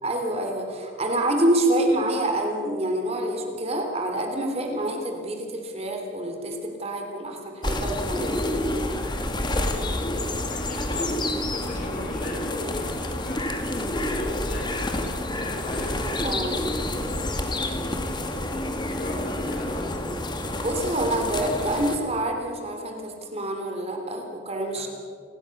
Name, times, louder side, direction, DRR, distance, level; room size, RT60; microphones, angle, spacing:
voice 1, 0.0-8.3 16.2-16.6 20.6-24.9, right 1 dB, 35° right, 3 dB, 3.3 m, -27 dB
sound 1, 7.6-22.0, left 1 dB, 25° left, 2.1 m, -28 dB
voice 2, 10.5-11.1 11.5-13.4 13.9-16.0 18.7-19.9 24.7-24.9, left 1 dB, 45° left, 1 dB, 6.4 m, -38 dB
28.5 x 20.5 x 6.7 m, 2.2 s
head